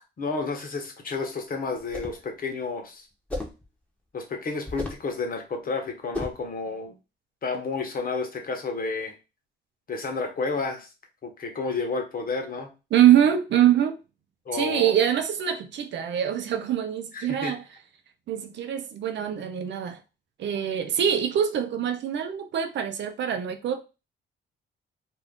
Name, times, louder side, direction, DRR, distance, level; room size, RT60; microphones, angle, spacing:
voice 1, 0.2-3.0 4.1-7.0 7.4-9.1 9.9-10.9 11.2-12.7 14.5-14.9 17.1-17.6, left 4 dB, 45° left, 1.0 m, -31 dB
sound 1, 1.8-2.2 3.3-3.6 4.7-5.1 6.1-6.5, left 2 dB, 5° left, 0.9 m, -34 dB
voice 2, 12.9-14.0 14.5-17.6 18.3-20.0 20.4-23.8, right 10 dB, 65° right, 0.6 m, -24 dB
2.6 x 2.4 x 3.5 m
cardioid pair, 90°, 20 cm